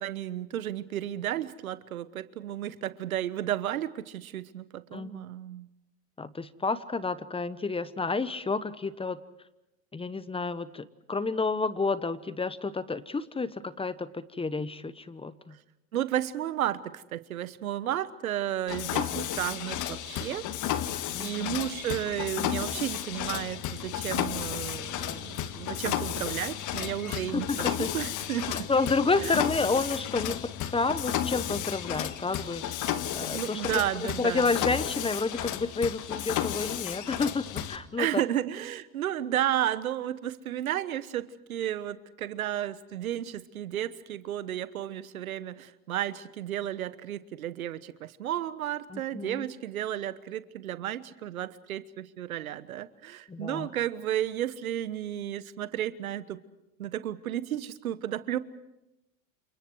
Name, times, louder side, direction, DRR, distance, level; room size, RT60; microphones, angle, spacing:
voice 1, 0.0-5.7 15.9-20.4 21.2-28.7 29.2-29.4 33.2-34.5 38.0-56.4 56.8-58.4, right 12 dB, 85° right, 15 dB, 1.2 m, -33 dB
voice 2, 4.9-5.2 6.2-9.2 9.9-15.6 21.1-21.6 27.1-27.9 28.5-30.4 30.7-33.6 34.2-38.2 48.9-49.5 53.3-53.7, left 3 dB, 15° left, 15 dB, 1.1 m, -30 dB
Mechanisms, 18.7-37.8, left 11 dB, 45° left, 1.8 m, -33 dB
29.5 x 27.5 x 4.8 m, 0.89 s
hypercardioid pair, 90°, 41 cm